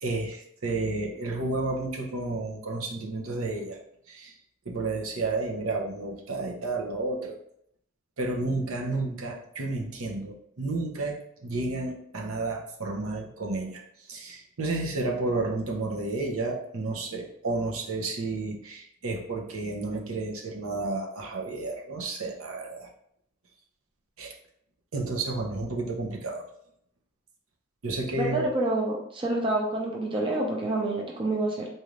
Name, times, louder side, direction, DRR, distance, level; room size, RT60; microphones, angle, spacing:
voice 1, 0.0-3.8 4.1-4.3 4.7-7.4 8.2-22.9 24.2-24.3 24.9-26.5 27.8-28.5, right 2 dB, 80° right, 1 dB, 0.8 m, -31 dB
voice 2, 28.2-31.7, right 2 dB, 25° right, -2 dB, 0.6 m, -28 dB
4.1 x 2.5 x 3.2 m, 0.71 s
head